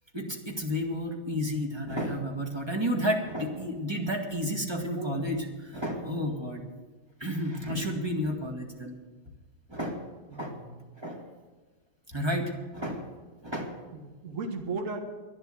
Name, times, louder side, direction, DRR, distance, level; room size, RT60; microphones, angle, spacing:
voice 1, 0.1-6.6 7.2-9.0 9.7-10.5 11.0-11.2 12.1-13.1 13.4-13.8, equal, 15° right, 1 dB, 1.6 m, -31 dB
voice 2, 4.9-5.3 6.2-6.7 10.3-10.8 13.9-15.0, right 4 dB, 40° right, 3 dB, 1.8 m, -37 dB
11.5 x 10.5 x 7.7 m, 1.4 s
omnidirectional pair, 2.4 m